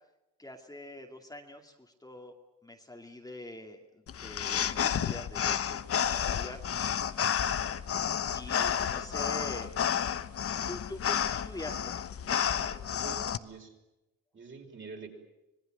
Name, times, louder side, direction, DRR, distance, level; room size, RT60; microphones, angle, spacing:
voice 1, 0.4-2.3 2.6-6.6 8.3-9.7 10.4-12.0 12.6-13.3, left 1 dB, 10° left, 2 dB, 2.5 m, -45 dB
sound 1, 4.1-13.4, left 8 dB, 50° left, 1.1 m, -31 dB
voice 2, 12.9-13.7 14.3-15.1, right 4 dB, 40° right, 2 dB, 5.8 m, -46 dB
26.0 x 19.0 x 9.2 m, 0.96 s
cardioid pair, 90°, 30 cm